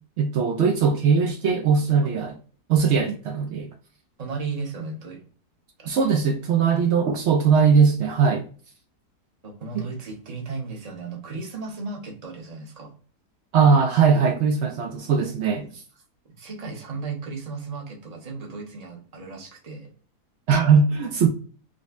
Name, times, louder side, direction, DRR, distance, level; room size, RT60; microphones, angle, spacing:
voice 1, 0.2-2.3 2.7-3.7 5.9-8.4 9.7-9.9 13.5-15.8 20.5-21.3, right 5 dB, 85° right, 0.6 m, -20 dB
voice 2, 4.2-5.2 5.8-6.2 9.4-12.9 16.4-19.9, right 4 dB, 35° right, 0.7 m, -35 dB
5.0 x 2.1 x 2.4 m
omnidirectional pair, 1.7 m